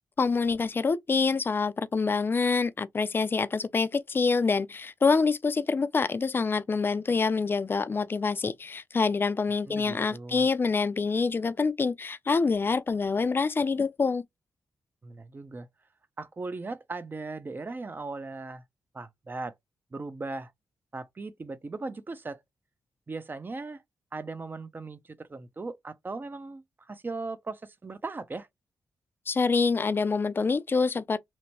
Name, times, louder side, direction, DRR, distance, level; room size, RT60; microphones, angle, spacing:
voice 1, 0.2-14.2 29.3-31.3, left 4 dB, 35° left, 0.3 m, -26 dB
voice 2, 9.7-10.5 15.0-15.7 16.2-18.6 18.9-19.5 19.9-20.5 20.9-22.4 23.1-23.8 24.1-28.5, right 3 dB, 30° right, 0.4 m, -38 dB
2.9 x 2.1 x 2.8 m
cardioid pair, 65°, 7 cm